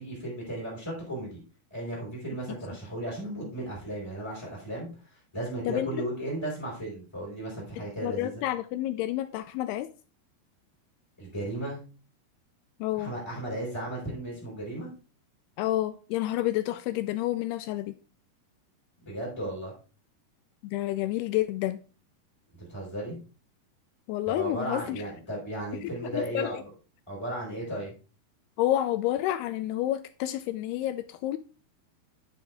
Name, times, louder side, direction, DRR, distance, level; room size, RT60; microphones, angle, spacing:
voice 1, 0.0-1.4 1.7-8.3 11.2-11.8 13.0-14.9 19.0-19.7 22.6-23.2 24.3-26.7 27.1-27.9, right 1 dB, 5° left, 4.3 m, -35 dB
voice 2, 5.7-6.0 8.0-9.9 12.8-13.1 15.6-17.9 20.6-21.8 24.1-25.0 25.8-26.6 28.6-31.4, left 14 dB, 80° left, 2.4 m, -29 dB
9.9 x 7.6 x 3.6 m
omnidirectional pair, 4.9 m